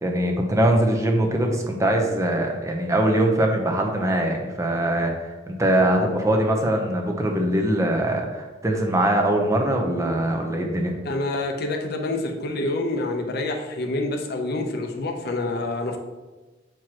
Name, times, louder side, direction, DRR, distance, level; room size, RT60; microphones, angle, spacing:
voice 1, 0.0-11.0, right 1 dB, 15° right, 1 dB, 0.8 m, -22 dB
voice 2, 11.0-16.0, left 2 dB, 55° left, 3 dB, 0.7 m, -27 dB
7.4 x 4.6 x 3.0 m, 1.2 s
head